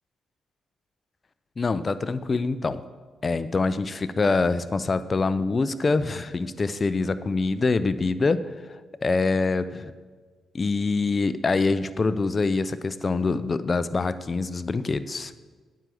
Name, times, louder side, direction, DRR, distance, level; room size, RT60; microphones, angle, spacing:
voice 1, 1.6-2.8 3.2-8.4 8.7-9.9 10.5-15.3, left 3 dB, 35° left, 13 dB, 0.4 m, -25 dB
9.2 x 4.7 x 7.6 m, 1.4 s
cardioid pair, 75°, 0 cm